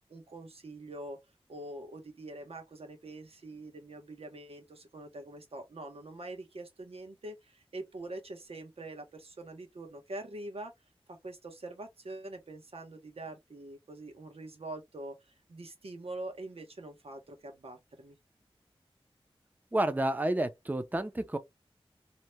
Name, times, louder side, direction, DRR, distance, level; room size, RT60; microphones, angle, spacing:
voice 1, 0.1-1.2 1.5-10.7 11.1-18.2, right 2 dB, 80° right, 1.0 m, -44 dB
voice 2, 19.7-21.4, right 1 dB, 15° right, 0.5 m, -30 dB
2.8 x 2.2 x 3.0 m
wide cardioid pair, 70°, 10 cm